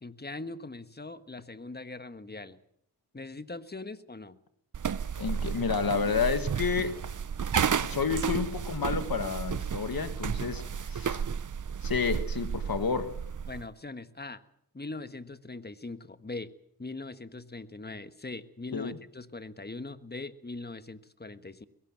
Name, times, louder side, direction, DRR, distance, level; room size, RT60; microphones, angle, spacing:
voice 1, 0.0-2.6 3.1-4.4 13.5-14.4 14.7-16.5 16.8-21.7, left 3 dB, 25° left, 1.5 m, -41 dB
sound 1, 4.7-13.7, right 7 dB, 55° right, 0.8 m, -32 dB
voice 2, 5.2-7.0 7.8-11.2 11.8-13.1 18.7-19.0, left 5 dB, 70° left, 1.9 m, -30 dB
22.0 x 17.5 x 7.6 m
cardioid pair, 50°, 37 cm